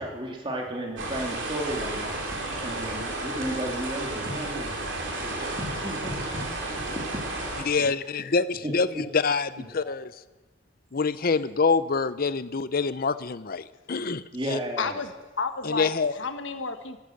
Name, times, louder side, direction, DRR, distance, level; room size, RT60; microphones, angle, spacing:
voice 1, 0.0-2.1 2.6-4.9 5.4-7.0 7.5-8.2 8.6-9.0 9.8-9.9 14.3-15.0, equal, 25° right, 0 dB, 2.7 m, -34 dB
sound 1, 1.0-7.6, right 2 dB, 70° right, 3.3 m, -32 dB
voice 2, 7.6-10.1 10.9-14.6 15.6-16.1, left 4 dB, 50° left, 15 dB, 0.6 m, -26 dB
voice 3, 14.8-17.0, left 4 dB, 75° left, 8 dB, 1.4 m, -32 dB
13.0 x 12.0 x 7.9 m, 1.1 s
head